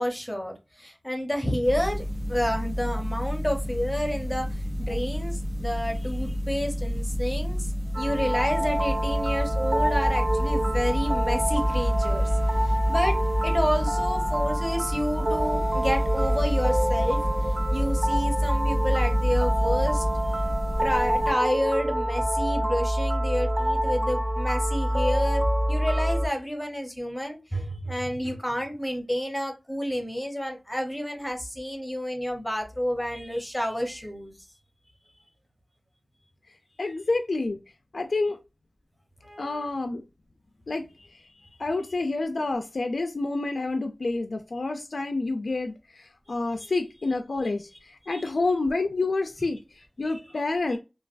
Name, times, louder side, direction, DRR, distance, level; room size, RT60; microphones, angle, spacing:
voice 1, 0.0-7.7 8.0-17.2 17.7-20.0 20.4-20.5 20.8-34.3 39.2-39.7 46.6-46.8 48.0-48.3 50.0-50.4, equal, 5° left, 0.8 m, -30 dB
sound 1, 1.6-21.3, equal, 65° right, 0.7 m, -30 dB
sound 2, 7.9-26.3, equal, 25° right, 0.4 m, -26 dB
voice 2, 36.8-37.6 37.9-38.4 39.4-40.0 40.7-40.9 41.6-49.6 50.0-50.8, left 3 dB, 80° left, 0.3 m, -28 dB
3.1 x 2.2 x 2.4 m
wide cardioid pair, 70°, 0 cm